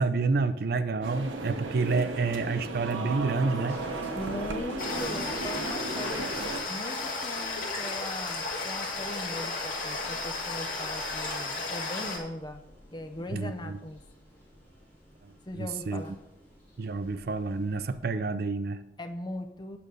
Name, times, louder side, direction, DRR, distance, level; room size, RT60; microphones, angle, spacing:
voice 1, 0.0-3.8 13.3-13.8 15.2-16.0 16.8-18.8, right 4 dB, 55° right, 13 dB, 0.4 m, -29 dB
sound 1, 1.0-6.6, right 2 dB, 90° right, 1.0 m, -35 dB
sound 2, 3.7-18.0, equal, 5° left, 2.5 m, -51 dB
voice 2, 4.1-12.6 12.9-14.0 15.5-16.1 19.0-19.8, left 1 dB, 20° left, 7 dB, 0.6 m, -39 dB
sound 3, 4.8-12.2, left 3 dB, 45° left, 1.8 m, -34 dB
8.6 x 6.3 x 5.2 m, 0.87 s
head